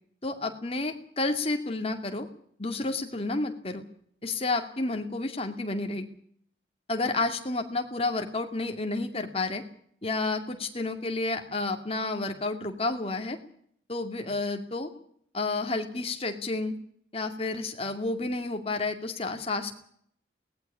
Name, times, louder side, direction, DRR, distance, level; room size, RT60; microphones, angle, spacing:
voice 1, 0.2-2.3 2.6-3.8 4.2-6.1 6.9-9.6 10.0-13.4 13.9-14.9 15.3-16.7 17.1-19.7, left 2 dB, 35° left, 5 dB, 2.4 m, -30 dB
18.5 x 15.0 x 9.9 m, 0.64 s
head